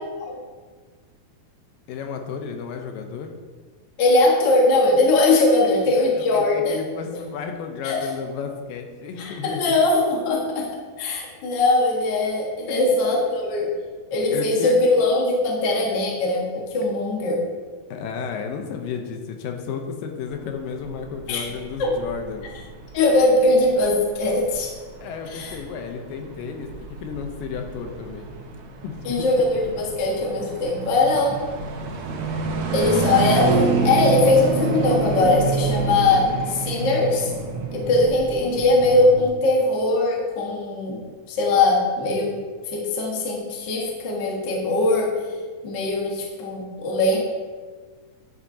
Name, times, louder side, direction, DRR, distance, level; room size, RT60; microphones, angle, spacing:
voice 1, 1.9-3.4 6.0-9.6 12.7-12.9 14.3-14.7 17.9-22.5 25.0-26.7 27.0-28.3 28.8-29.3, left 6 dB, 80° left, 4 dB, 2.3 m, -33 dB
voice 2, 4.0-6.9 7.8-8.0 9.2-10.7 11.0-13.7 14.1-17.4 21.3-21.4 21.8-21.9 22.9-24.7 25.3-25.5 29.0-31.4 32.7-37.3 37.7-41.0 41.3-42.3 42.7-45.1 45.6-47.2, left 2 dB, 55° left, -2 dB, 1.3 m, -20 dB
sound 1, 20.3-39.3, right 4 dB, 75° right, 1.7 m, -28 dB
11.0 x 7.1 x 2.7 m, 1.5 s
omnidirectional pair, 4.1 m